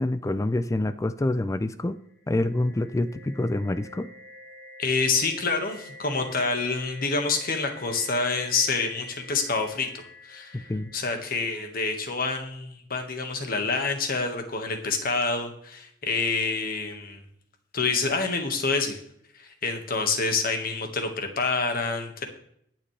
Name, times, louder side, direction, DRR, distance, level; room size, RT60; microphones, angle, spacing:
voice 1, 0.0-2.0 2.3-4.1 10.5-10.9, left 1 dB, 15° left, 13 dB, 0.4 m, -27 dB
sound 1, 2.0-11.9, left 1 dB, 65° left, 5.5 m, -47 dB
voice 2, 4.8-17.2 17.7-19.0 19.3-22.2, left 4 dB, 50° left, 4 dB, 1.7 m, -27 dB
20.5 x 7.6 x 3.3 m, 0.69 s
head